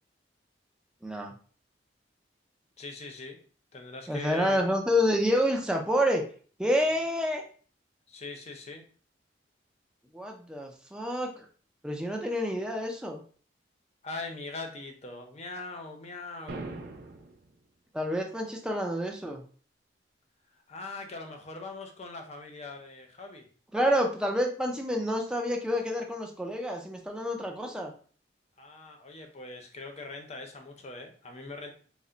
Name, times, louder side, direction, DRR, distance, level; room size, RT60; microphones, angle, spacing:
voice 1, 1.0-1.3 4.1-6.2 6.6-7.4 10.1-11.5 11.8-13.2 17.9-19.4 23.7-27.9, equal, 5° right, 1 dB, 0.5 m, -28 dB
voice 2, 2.8-3.4 3.7-4.7 8.1-8.8 14.0-16.7 20.7-23.5 28.6-31.7, left 3 dB, 40° left, 4 dB, 0.6 m, -41 dB
sound 1, 16.5-17.5, right 2 dB, 55° right, 0.5 m, -40 dB
3.3 x 2.1 x 3.8 m, 0.43 s
head